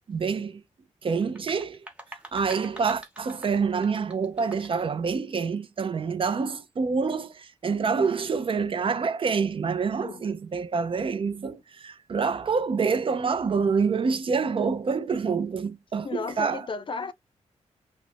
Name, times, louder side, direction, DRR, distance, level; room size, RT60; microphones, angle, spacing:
voice 1, 0.1-0.6 1.0-1.8 2.3-16.7, right 5 dB, 45° right, 0.5 m, -27 dB
sound 1, 1.2-4.9, right 1 dB, 10° right, 0.9 m, -46 dB
voice 2, 16.0-17.1, left 4 dB, 45° left, 0.4 m, -33 dB
2.5 x 2.1 x 3.3 m
cardioid pair, 90°, 12 cm